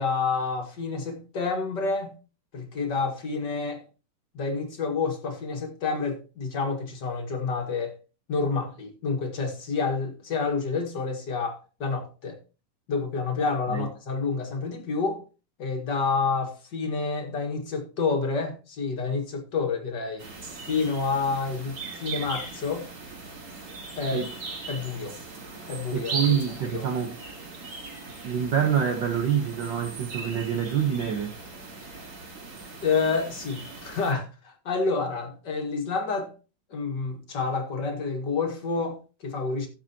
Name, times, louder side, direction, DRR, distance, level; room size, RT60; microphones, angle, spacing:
voice 1, 0.0-2.1 2.5-3.8 4.3-7.9 8.3-12.4 12.9-15.2 15.6-20.2 20.7-22.9 24.0-24.2 24.7-25.2 25.7-26.9 31.9-32.0 32.8-36.3 36.7-39.7, left 4 dB, 35° left, 2.1 m, -29 dB
sound 1, 20.2-34.1, right 3 dB, 45° right, 3.8 m, -39 dB
voice 2, 25.9-27.2 28.2-31.3, right 8 dB, 85° right, 1.0 m, -26 dB
16.0 x 7.4 x 2.9 m
omnidirectional pair, 3.8 m